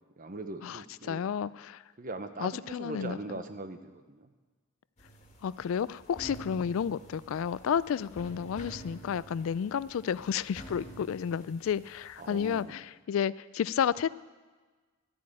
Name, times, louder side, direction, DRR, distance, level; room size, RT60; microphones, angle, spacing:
voice 1, 0.2-1.2 2.0-4.3 8.1-8.2 12.2-12.8, right 2 dB, 40° right, 9 dB, 0.9 m, -41 dB
voice 2, 1.1-1.8 2.4-3.2 5.4-14.1, left 7 dB, 65° left, 19 dB, 0.3 m, -31 dB
sound 1, 5.0-12.6, right 2 dB, 30° left, 2.1 m, -49 dB
12.5 x 8.3 x 8.7 m, 1.3 s
head